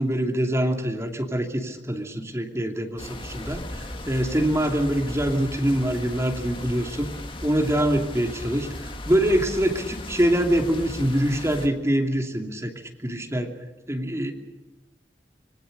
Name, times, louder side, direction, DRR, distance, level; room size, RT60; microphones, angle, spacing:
voice 1, 0.0-7.1 7.4-12.7 13.0-13.5 13.9-14.3, right 1 dB, 15° right, 3 dB, 2.8 m, -24 dB
sound 1, 3.0-11.7, left 1 dB, 30° left, 2.1 m, -37 dB
25.5 x 21.5 x 6.7 m, 1.1 s
head